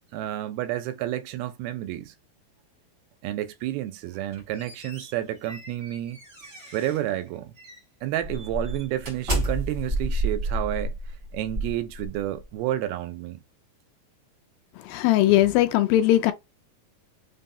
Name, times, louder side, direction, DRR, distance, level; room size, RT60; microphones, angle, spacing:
voice 1, 0.1-2.1 3.2-6.2 6.7-7.5 8.0-11.0 11.3-13.4, right 13 dB, 90° right, 2.6 m, -30 dB
sound 1, 4.1-7.1 7.6-7.8 8.2-12.5, right 1 dB, 60° right, 0.8 m, -31 dB
voice 2, 14.9-16.3, left 14 dB, 80° left, 2.2 m, -19 dB
6.0 x 2.0 x 2.7 m
omnidirectional pair, 4.3 m